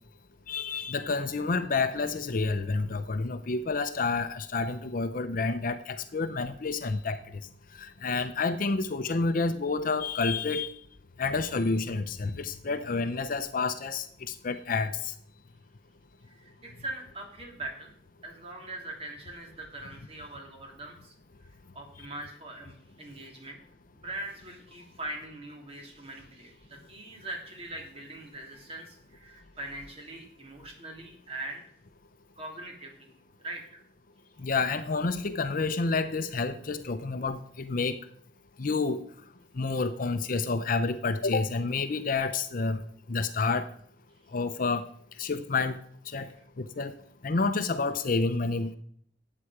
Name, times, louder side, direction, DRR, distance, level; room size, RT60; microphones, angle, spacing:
voice 1, 0.5-7.4 7.7-10.7 11.2-15.1 34.4-38.0 38.6-39.0 39.5-42.8 43.1-43.6 44.3-44.8 45.2-45.8 46.1-47.0 47.2-48.8, left 4 dB, 50° left, 10 dB, 0.6 m, -29 dB
voice 2, 16.2-17.9 18.2-21.1 21.7-23.6 23.9-31.6 32.4-33.1 33.4-33.8 46.2-46.4, right 1 dB, 35° right, 1 dB, 3.0 m, -42 dB
12.5 x 8.5 x 4.9 m, 0.63 s
head